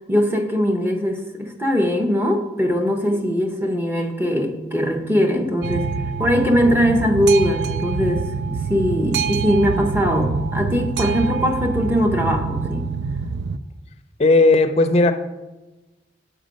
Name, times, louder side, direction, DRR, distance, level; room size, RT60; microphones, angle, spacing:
voice 1, 0.0-5.9 6.2-12.8, equal, 10° right, 3 dB, 0.7 m, -21 dB
Boat Water vehicle, 5.6-13.6, right 5 dB, 65° right, 0.3 m, -25 dB
voice 2, 14.2-15.1, left 2 dB, 35° left, 8 dB, 0.5 m, -15 dB
6.4 x 4.5 x 5.2 m, 1.1 s
head